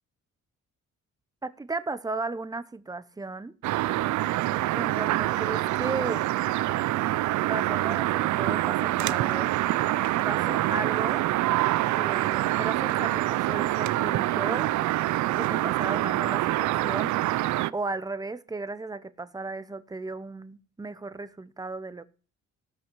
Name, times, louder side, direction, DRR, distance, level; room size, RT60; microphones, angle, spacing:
voice 1, 1.4-3.5 4.7-6.3 7.4-9.5 10.2-11.3 12.0-14.7 15.3-17.2 17.7-22.0, right 3 dB, 10° right, 0.8 m, -35 dB
sound 1, 3.6-17.7, right 16 dB, 70° right, 0.5 m, -26 dB
18.0 x 6.2 x 4.7 m
cardioid pair, 90°, 30 cm